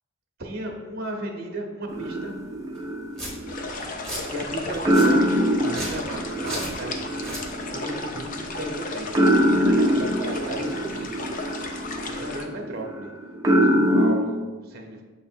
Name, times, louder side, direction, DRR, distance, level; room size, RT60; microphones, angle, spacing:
voice 1, 0.4-2.4 4.3-11.3 12.0-13.1 13.5-15.0, right 1 dB, 50° right, 1 dB, 0.8 m, -35 dB
sound 1, 1.9-4.4 4.8-14.1, equal, 15° right, 0.6 m, -24 dB
Domestic sounds home sounds, 2.8-2.9 3.2-3.3 3.8-4.2 4.7-5.1 5.7-6.0 6.5-6.7 7.1-7.4, right 1 dB, 5° left, 1.3 m, -34 dB
sound 2, 3.5-12.5, left 3 dB, 40° left, 0.5 m, -35 dB
7.0 x 3.2 x 4.4 m, 1.3 s
head